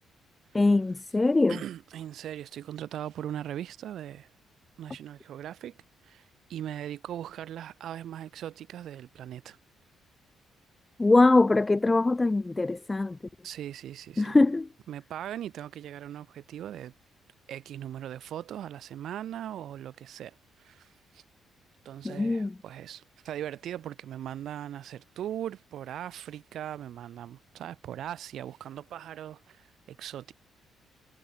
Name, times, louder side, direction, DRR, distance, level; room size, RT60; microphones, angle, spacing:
voice 1, 0.5-1.6 11.0-13.2 14.2-14.7 22.0-22.5, left 2 dB, 20° left, 1.0 m, -22 dB
voice 2, 1.5-4.3 4.8-5.8 6.0-9.6 13.4-14.4 14.9-16.9 17.5-21.2 21.8-30.3, right 11 dB, 70° right, 5.1 m, -39 dB
cardioid pair, 90°, 0 cm